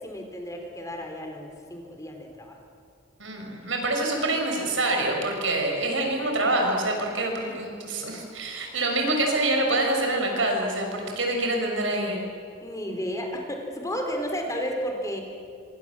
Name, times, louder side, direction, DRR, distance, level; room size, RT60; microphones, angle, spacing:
voice 1, 0.0-2.6 7.2-7.5 12.6-15.2, equal, 15° left, 3 dB, 3.6 m, -33 dB
voice 2, 3.2-12.2, right 2 dB, 75° right, 1 dB, 6.4 m, -26 dB
26.5 x 25.0 x 7.6 m, 2.5 s
head